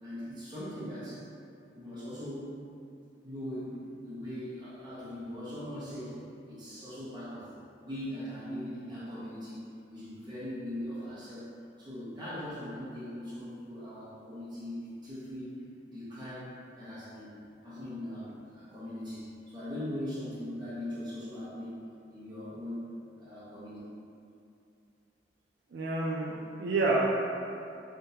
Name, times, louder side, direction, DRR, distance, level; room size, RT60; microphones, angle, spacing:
voice 1, 0.0-1.2 1.7-2.5 3.2-7.5 7.8-11.5 11.8-15.5 15.8-16.5 16.8-22.8 23.2-23.8, left 1 dB, 25° right, -12 dB, 1.1 m, -40 dB
voice 2, 25.7-27.1, right 3 dB, 70° right, -5 dB, 0.4 m, -28 dB
3.5 x 2.7 x 2.8 m, 2.6 s
head